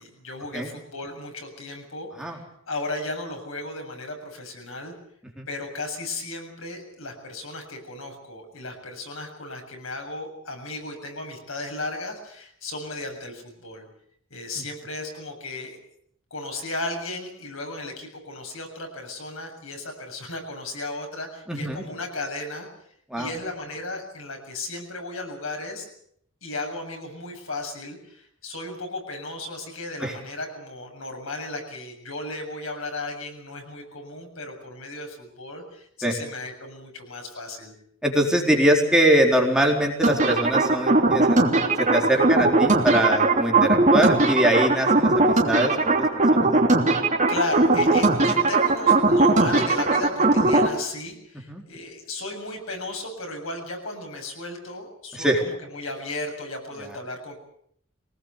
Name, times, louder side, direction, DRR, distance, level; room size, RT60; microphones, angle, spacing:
voice 1, 0.0-4.9 5.5-13.9 14.3-15.8 16.3-22.7 23.2-25.9 26.4-37.7 47.3-57.4, left 2 dB, 80° left, 3 dB, 7.5 m, -35 dB
voice 2, 21.5-21.8 23.1-23.3 30.0-30.1 36.0-36.1 38.0-41.4 41.8-46.1 46.3-46.5 51.5-51.6 55.2-55.4, right 1 dB, 5° right, 0 dB, 4.0 m, -22 dB
sound 1, 40.0-50.7, right 2 dB, 35° right, 3.1 m, -19 dB
24.0 x 19.5 x 8.3 m, 0.68 s
head